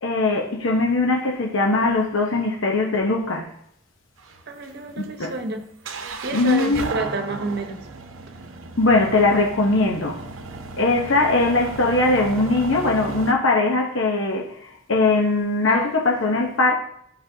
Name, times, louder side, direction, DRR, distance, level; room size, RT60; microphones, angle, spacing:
voice 1, 0.0-3.5 5.0-5.3 6.3-7.0 8.8-10.2 10.8-14.6 14.9-16.7, left 2 dB, 70° left, 1.0 m, -20 dB
sound 1, 4.2-13.3, right 4 dB, 75° right, 0.8 m, -35 dB
voice 2, 4.5-7.8, right 2 dB, 55° right, 1.0 m, -30 dB
11.5 x 5.4 x 2.8 m
head